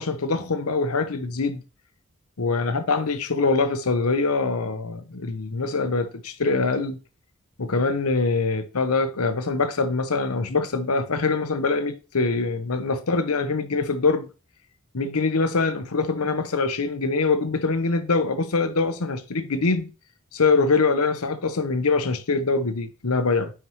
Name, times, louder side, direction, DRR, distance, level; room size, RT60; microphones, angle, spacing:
voice 1, 0.0-1.6 2.4-7.0 7.6-14.3 14.9-19.9 20.3-23.5, left 3 dB, 85° left, 0.9 m, -24 dB
9.3 x 4.6 x 3.0 m
head